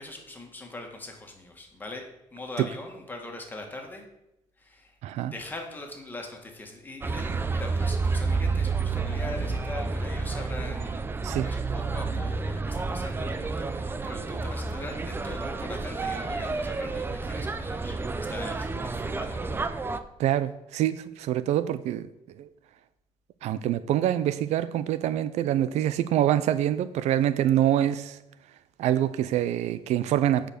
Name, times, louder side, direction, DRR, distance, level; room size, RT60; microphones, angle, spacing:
voice 1, 0.0-4.0 4.6-11.1 11.4-19.6, left 2 dB, 15° left, 1.8 m, -41 dB
voice 2, 5.0-5.3 11.2-11.5 20.2-22.1 22.4-22.5 23.4-28.2 28.8-30.5, right 12 dB, 80° right, 0.5 m, -25 dB
sound 1, 7.0-20.0, right 4 dB, 20° right, 0.5 m, -30 dB
8.9 x 5.2 x 6.5 m
cardioid pair, 130°, 11 cm